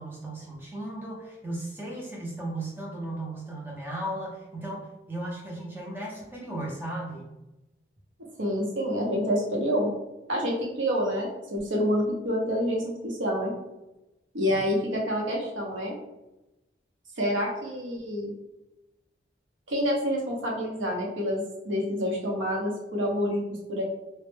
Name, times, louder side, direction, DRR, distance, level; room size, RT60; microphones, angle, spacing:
voice 1, 0.0-7.3 14.5-14.6, right 1 dB, 10° right, -3 dB, 0.5 m, -36 dB
voice 2, 8.4-9.9 10.3-13.5 14.3-15.9 17.2-18.3 19.7-23.8, equal, 90° right, -1 dB, 0.7 m, -28 dB
2.1 x 2.0 x 3.1 m, 0.98 s
head